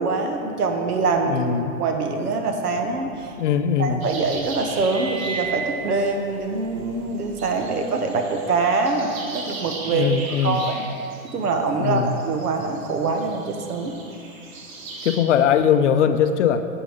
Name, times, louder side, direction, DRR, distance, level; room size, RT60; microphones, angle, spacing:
voice 1, 0.0-1.4 1.7-3.3 3.8-10.1 10.4-10.8 11.2-14.0, right 3 dB, 80° right, 4 dB, 1.4 m, -24 dB
voice 2, 1.3-1.7 3.4-4.0 9.9-10.6 11.8-12.2 15.0-16.7, left 8 dB, 55° left, 10 dB, 0.6 m, -20 dB
sound 1, 3.0-3.9 4.3-7.7, right 6 dB, 15° right, 0.8 m, -35 dB
sound 2, 4.0-15.2, right 3 dB, 65° right, 2.0 m, -39 dB
8.5 x 7.8 x 5.2 m, 2.4 s
hypercardioid pair, 150°, 45 cm